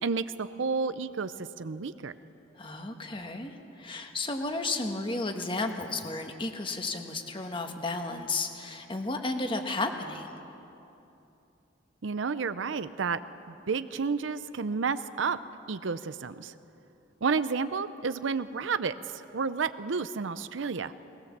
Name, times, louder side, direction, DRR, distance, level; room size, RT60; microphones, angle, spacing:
voice 1, 0.0-2.1 12.0-13.2 13.5-15.4 15.7-16.5 17.2-20.9, right 5 dB, 75° right, 12 dB, 0.6 m, -31 dB
voice 2, 2.6-10.4, left 3 dB, 25° left, 5 dB, 1.4 m, -33 dB
20.0 x 20.0 x 7.4 m, 2.9 s
head